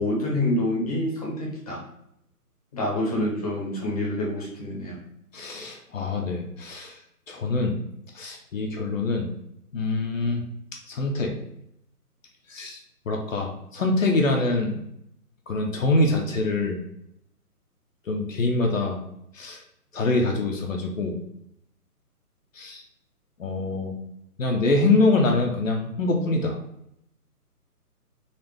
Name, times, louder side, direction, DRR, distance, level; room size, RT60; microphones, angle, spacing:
voice 1, 0.0-1.8 2.7-5.0, left 1 dB, 25° left, -4 dB, 0.8 m, -27 dB
voice 2, 5.3-6.9 7.3-7.7 8.1-9.3 9.7-10.4 10.9-11.3 12.5-12.8 13.1-14.8 15.5-16.8 18.1-19.0 19.3-19.6 19.9-21.2 22.6-22.8 23.4-23.9 24.4-26.6, left 2 dB, 55° left, 2 dB, 0.7 m, -24 dB
4.0 x 2.4 x 3.4 m, 0.77 s
hypercardioid pair, 165°, 46 cm